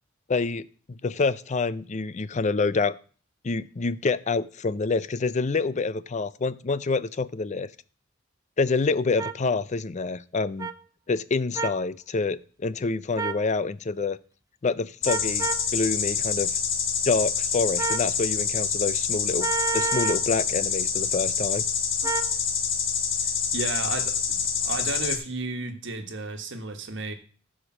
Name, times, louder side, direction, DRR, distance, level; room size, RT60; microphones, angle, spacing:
voice 1, 0.3-0.7 1.0-2.9 3.4-7.7 8.6-10.7 11.1-14.2 14.6-16.5 17.1-19.5 19.7-21.6, left 4 dB, 35° left, 16 dB, 0.5 m, -27 dB
sound 1, 9.2-9.3 10.6-10.7 11.6-11.8 13.2-13.4 15.1-15.7 17.8-18.1 19.4-20.3 22.0-22.3, right 6 dB, 15° right, 0.4 m, -29 dB
sound 2, 15.0-25.2, left 7 dB, 65° left, 1.6 m, -27 dB
voice 2, 23.2-27.1, right 3 dB, 65° right, 6 dB, 1.6 m, -33 dB
13.5 x 5.1 x 6.1 m, 0.41 s
head